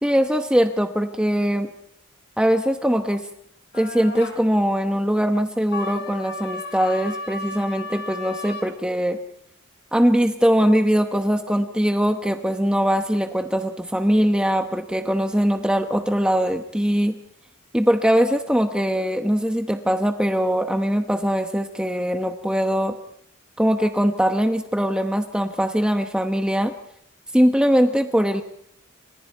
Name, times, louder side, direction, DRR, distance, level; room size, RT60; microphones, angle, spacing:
voice 1, 0.0-1.7 2.4-3.3 3.7-9.2 9.9-17.1 17.7-23.0 23.6-26.7 27.3-28.4, equal, 5° right, 6 dB, 0.9 m, -21 dB
sound 1, 3.7-4.4 5.7-8.7, left 3 dB, 55° left, 4.1 m, -34 dB
29.5 x 25.5 x 4.6 m, 0.72 s
head